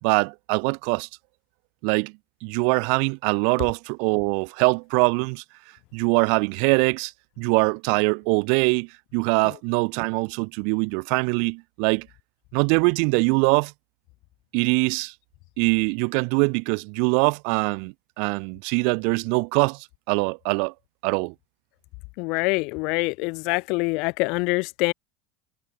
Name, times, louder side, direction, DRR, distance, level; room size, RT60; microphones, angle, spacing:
voice 1, 0.0-1.1 1.8-2.1 2.4-5.4 5.9-7.1 7.4-12.1 12.5-13.7 14.5-15.1 15.6-20.7 21.0-21.3, right 40 dB or more, 60° right, 3.1 m, -23 dB
voice 2, 22.2-24.9, left 29 dB, 60° left, 2.1 m, -25 dB
supercardioid pair, 145°, 0 cm